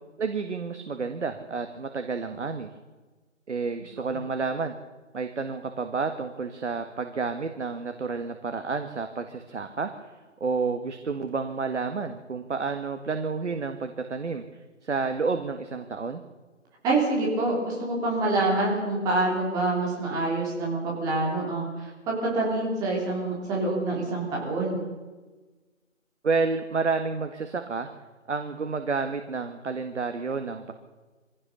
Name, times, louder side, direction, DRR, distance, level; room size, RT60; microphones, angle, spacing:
voice 1, 0.2-2.7 3.5-4.7 5.1-10.1 10.4-14.4 14.8-16.2 26.2-27.9 28.3-30.7, right 4 dB, 60° right, 7 dB, 1.8 m, -30 dB
voice 2, 16.8-24.8, right 2 dB, 10° right, -3 dB, 3.5 m, -26 dB
23.5 x 16.5 x 6.9 m, 1.3 s
figure-of-eight pair, 160°, 39 cm